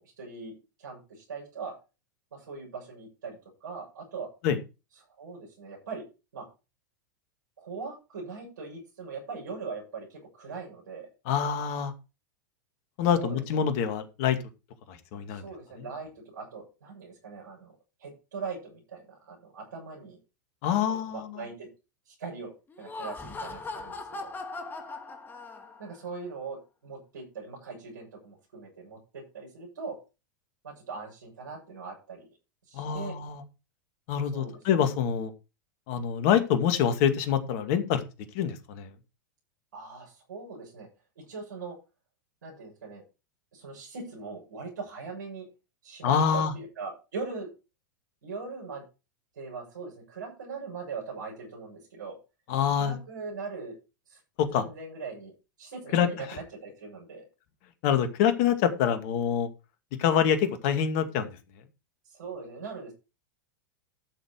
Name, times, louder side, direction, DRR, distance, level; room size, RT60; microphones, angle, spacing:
voice 1, 0.0-1.7 2.3-4.3 5.2-6.0 6.3-6.5 7.6-11.1 13.2-13.6 15.3-17.7 18.0-20.2 20.9-21.7 22.1-24.3 25.8-30.0 30.6-32.3 32.7-33.2 34.3-34.6 39.7-40.9 41.2-41.8 42.4-43.0 43.5-45.5 45.8-47.5 48.2-48.9 49.4-52.2 52.7-53.8 54.1-54.2 54.5-55.3 55.6-57.3 62.0-62.9, right 4 dB, 75° right, -4 dB, 7.2 m, -41 dB
voice 2, 11.3-11.9 13.0-14.4 14.9-15.4 20.6-21.3 32.7-33.4 34.1-35.3 35.9-38.0 38.3-38.9 46.0-46.5 52.5-52.9 54.4-54.7 55.9-56.1 57.8-59.5 60.0-61.3, left 8 dB, 55° left, 8 dB, 2.2 m, -25 dB
Laughter, 22.7-26.0, left 3 dB, 20° left, 2.3 m, -39 dB
13.0 x 7.1 x 4.6 m, 0.30 s
hypercardioid pair, 95°, 10 cm